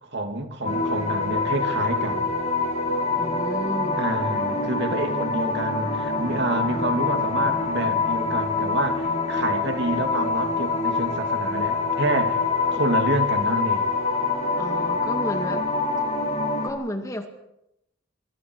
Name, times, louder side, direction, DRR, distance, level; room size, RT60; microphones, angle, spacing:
voice 1, 0.0-2.3 4.0-12.4 12.7-13.9, right 2 dB, 55° right, 5 dB, 2.7 m, -28 dB
sound 1, 0.6-16.7, left 4 dB, 30° left, 3.0 m, -25 dB
voice 2, 3.2-4.0 14.6-15.6 16.6-17.3, equal, 15° left, 5 dB, 1.9 m, -32 dB
24.5 x 24.0 x 4.8 m, 0.82 s
head